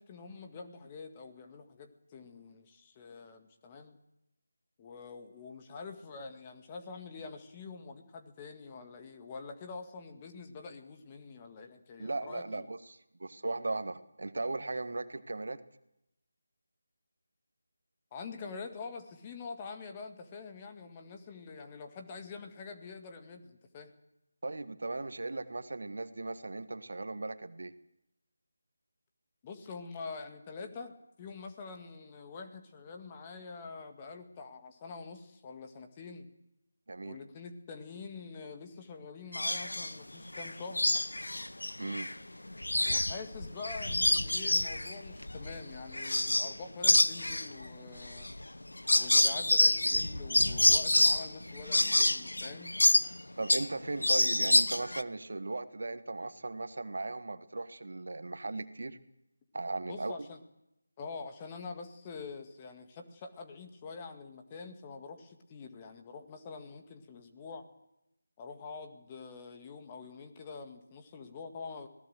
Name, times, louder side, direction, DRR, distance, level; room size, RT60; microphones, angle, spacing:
voice 1, 0.0-4.0 4.8-12.6 18.1-23.9 29.4-36.3 37.0-41.0 42.8-48.3 48.9-52.8 59.9-60.4 61.0-67.6 68.4-71.9, left 4 dB, 20° left, 5 dB, 1.9 m, -45 dB
voice 2, 12.0-15.6 24.4-27.7 36.9-37.2 41.8-42.1 53.4-59.0 59.5-60.1, right 2 dB, 60° right, 11 dB, 1.6 m, -37 dB
sound 1, 39.3-39.9 40.3-42.1 42.5-46.6 46.8-53.7 54.0-55.0, left 1 dB, 75° left, 1.0 m, -27 dB
25.5 x 18.0 x 7.9 m, 0.87 s
figure-of-eight pair, 160°, 0 cm